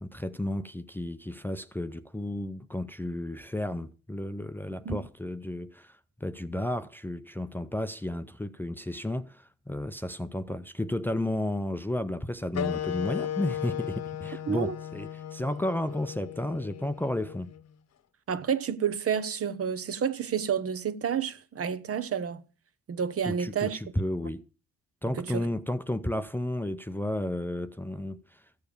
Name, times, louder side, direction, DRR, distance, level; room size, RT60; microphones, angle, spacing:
voice 1, 0.0-17.5 23.3-24.4 25.0-28.5, left 1 dB, 5° left, 0.6 m, -33 dB
sound 1, 12.5-17.7, left 10 dB, 60° left, 1.0 m, -36 dB
voice 2, 18.3-22.4 22.9-23.8 25.1-25.5, right 7 dB, 50° right, 1.1 m, -30 dB
14.5 x 7.0 x 6.7 m
cardioid pair, 90°, 30 cm